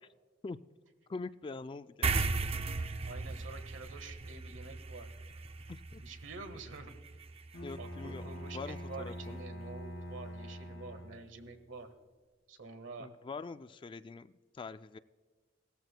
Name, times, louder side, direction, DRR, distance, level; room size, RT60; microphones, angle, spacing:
voice 1, 1.1-2.6 5.7-6.0 7.6-9.4 13.0-15.0, left 4 dB, 25° left, 12 dB, 0.3 m, -44 dB
sound 1, 2.0-8.8, right 3 dB, 30° right, 0.5 m, -38 dB
voice 2, 2.7-5.1 6.0-6.9 7.8-11.9 12.5-13.1, right 3 dB, 70° right, 7 dB, 1.4 m, -48 dB
Bowed string instrument, 7.5-11.5, equal, 80° left, 1.8 m, -44 dB
18.0 x 14.0 x 2.2 m, 1.4 s
head